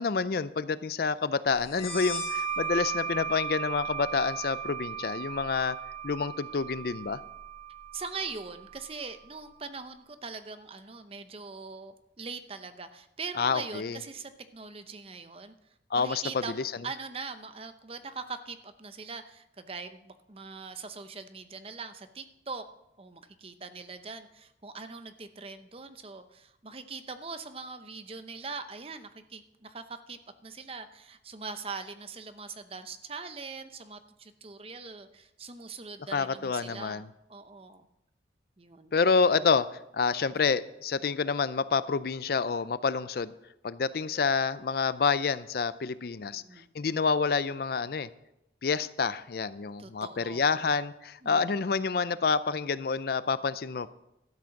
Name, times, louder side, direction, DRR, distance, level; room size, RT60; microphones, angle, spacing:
voice 1, 0.0-5.8 6.0-7.2 13.4-14.0 15.9-16.7 36.1-37.1 38.9-39.7 39.9-43.3 43.6-46.4 46.7-48.1 48.6-53.9, left 5 dB, 55° left, 15 dB, 0.4 m, -28 dB
sound 1, 1.7-9.0, right 6 dB, 35° left, 4.9 m, -36 dB
voice 2, 7.9-15.5 15.9-22.6 23.0-37.0 37.3-37.9 38.6-38.9 46.3-46.6 49.8-50.5 51.2-51.5, right 4 dB, 30° right, 9 dB, 0.7 m, -42 dB
12.5 x 7.7 x 5.9 m, 0.84 s
head